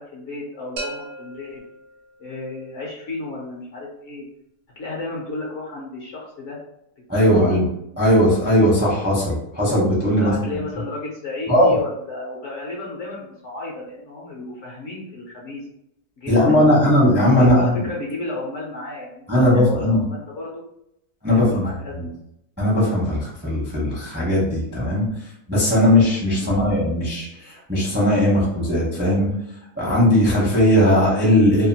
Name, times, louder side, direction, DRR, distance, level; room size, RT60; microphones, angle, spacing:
voice 1, 0.0-1.6 2.2-4.3 4.8-6.6 7.4-7.6 10.1-15.6 16.2-16.8 17.3-20.6 21.3-22.2 26.3-26.7, left 2 dB, 60° left, -4 dB, 0.9 m, -33 dB
sound 1, 0.8-2.6, right 2 dB, 75° right, 1.0 m, -36 dB
voice 2, 7.1-7.7 8.0-10.6 11.5-11.8 16.3-17.8 19.3-20.0 21.2-21.6 21.9-22.0 22.6-25.1 25.5-29.3 29.8-31.7, left 1 dB, 10° right, -6 dB, 0.6 m, -18 dB
2.8 x 2.4 x 2.7 m, 0.79 s
omnidirectional pair, 1.6 m